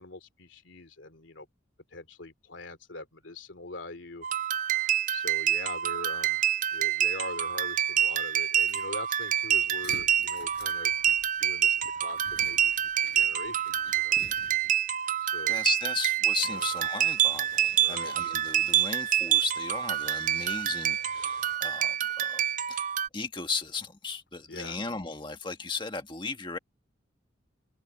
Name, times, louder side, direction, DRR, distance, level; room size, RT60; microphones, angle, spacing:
voice 1, 0.0-1.5 1.9-4.3 5.1-6.4 6.7-10.9 11.4-14.2 15.2-15.6 16.5-16.6 17.8-18.1 24.5-24.8, left 3 dB, 90° left, 2.7 m, -43 dB
sound 1, 4.2-23.1, right 10 dB, 45° right, 0.4 m, -27 dB
sound 2, 8.5-14.9, left 3 dB, 60° left, 4.3 m, -51 dB
voice 2, 15.5-22.9 23.1-26.6, left 4 dB, 25° left, 1.6 m, -36 dB
sound 3, 16.3-21.6, right 6 dB, 70° right, 6.3 m, -53 dB
head